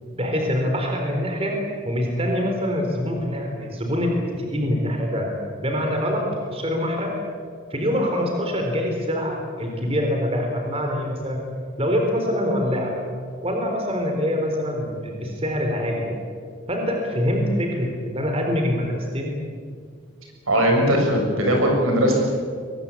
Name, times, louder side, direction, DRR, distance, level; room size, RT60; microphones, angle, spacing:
voice 1, 0.1-1.6 1.8-5.3 5.6-7.1 7.7-11.4 11.8-12.9 13.4-16.2 16.7-19.3, equal, 30° right, 2 dB, 3.9 m, -24 dB
voice 2, 20.5-22.4, equal, 85° right, 1 dB, 7.1 m, -19 dB
22.5 x 21.0 x 8.5 m, 2.1 s
head